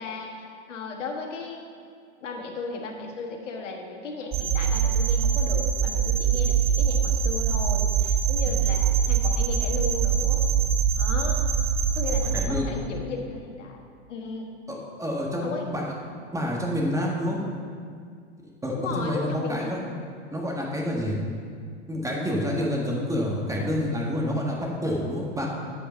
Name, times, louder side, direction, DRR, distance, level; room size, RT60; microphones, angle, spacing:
voice 1, 0.0-1.6 2.2-10.4 11.0-11.4 11.9-13.8 14.1-14.5 15.4-15.7 18.7-19.9, left 4 dB, 90° left, 2 dB, 1.5 m, -35 dB
sound 1, 4.3-12.5, right 7 dB, 25° right, 0.6 m, -23 dB
voice 2, 12.3-12.7 14.7-15.9 16.3-17.4 18.6-19.8 20.3-21.2 21.9-25.5, equal, 10° right, -2 dB, 1.6 m, -28 dB
8.6 x 5.3 x 6.9 m, 2.2 s
hypercardioid pair, 115°, 36 cm